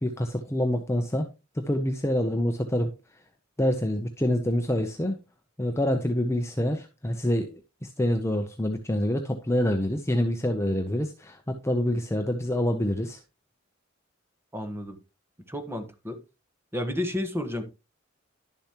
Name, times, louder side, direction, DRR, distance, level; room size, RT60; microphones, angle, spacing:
voice 1, 0.0-1.3 1.5-2.9 3.6-5.2 5.6-7.5 7.8-13.2, left 1 dB, 15° left, 0.7 m, -26 dB
voice 2, 14.5-15.0 15.5-16.2 16.7-17.6, left 1 dB, 10° right, 1.3 m, -31 dB
11.0 x 6.9 x 2.9 m
head